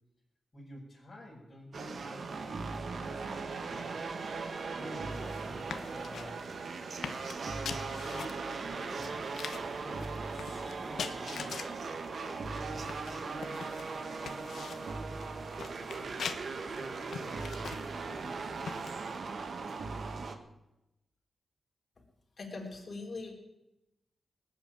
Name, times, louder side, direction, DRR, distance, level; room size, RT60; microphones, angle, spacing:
voice 1, 0.5-4.0 4.7-6.4 7.4-9.3 9.7-11.7 12.5-16.2 16.6-17.7 18.0-18.5, equal, 30° left, -6 dB, 5.8 m, -50 dB
sound 1, 1.7-20.4, right 4 dB, 60° right, 1.5 m, -39 dB
sound 2, 5.1-19.2, left 6 dB, 80° left, 1.1 m, -45 dB
voice 2, 22.4-23.4, left 3 dB, 45° left, -1 dB, 3.9 m, -41 dB
19.0 x 8.3 x 9.2 m, 0.94 s
cardioid pair, 90°, 0 cm